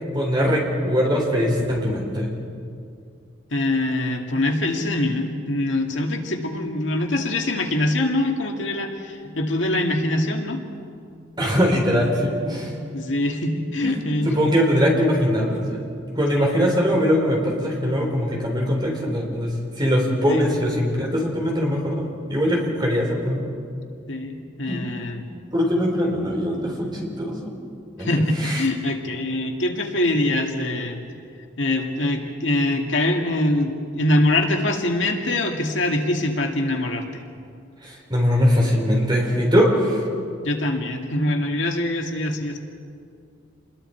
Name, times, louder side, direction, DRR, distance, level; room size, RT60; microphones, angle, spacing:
voice 1, 0.1-2.3 11.4-12.7 14.2-15.8 16.2-19.5 19.8-23.4 24.7-24.9 25.5-27.5 28.0-28.1 28.4-28.6 37.8-40.0, equal, 25° right, -1 dB, 4.5 m, -21 dB
voice 2, 3.5-10.6 12.9-14.5 16.4-16.5 20.3-20.5 24.1-25.2 28.0-31.1 31.6-37.2 40.4-42.6, left 1 dB, 75° left, 3 dB, 2.0 m, -23 dB
28.0 x 21.5 x 4.5 m, 2.4 s
head